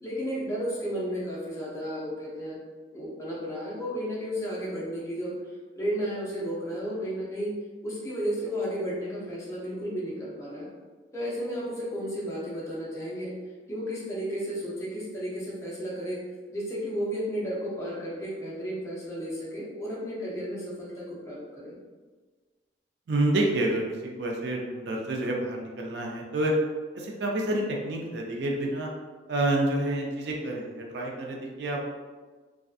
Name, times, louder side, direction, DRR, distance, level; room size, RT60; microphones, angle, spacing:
voice 1, 0.0-2.6 2.9-5.4 5.8-7.6 7.8-10.7 11.1-13.3 13.7-16.2 16.5-21.8, equal, 15° left, -5 dB, 0.5 m, -33 dB
voice 2, 23.1-26.5 26.9-28.9 29.3-31.9, right 1 dB, 70° right, -1 dB, 0.4 m, -28 dB
2.5 x 2.3 x 2.3 m, 1.4 s
head